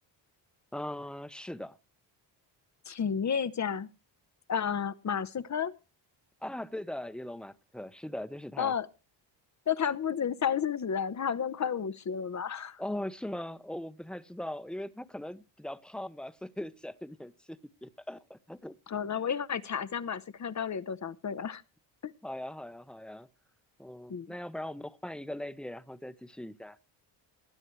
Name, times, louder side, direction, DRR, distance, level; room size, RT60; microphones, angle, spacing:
voice 1, 0.7-1.7 6.4-8.7 12.8-18.7 22.2-23.3 23.8-26.8, left 1 dB, ahead, 0.8 m, -40 dB
voice 2, 2.9-3.9 4.5-5.7 8.6-8.9 9.7-12.8 18.9-21.6 22.0-22.1 24.1-24.3, left 7 dB, 35° left, 0.8 m, -31 dB
19.5 x 9.8 x 3.2 m
cardioid pair, 85°, 49 cm